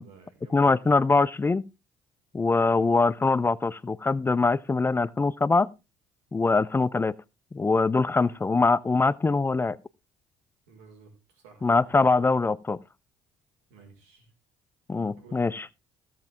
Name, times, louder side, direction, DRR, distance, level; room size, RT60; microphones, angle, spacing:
voice 1, 0.0-1.1 2.6-2.9 8.1-8.4 10.7-12.1 13.7-14.3 15.1-15.5, right 4 dB, 80° right, 4.9 m, -52 dB
voice 2, 0.5-1.6 2.3-5.7 6.3-7.1 7.5-9.8 11.6-12.8 14.9-15.6, left 3 dB, 20° left, 0.5 m, -23 dB
16.0 x 7.5 x 3.5 m
hypercardioid pair, 65°, 11 cm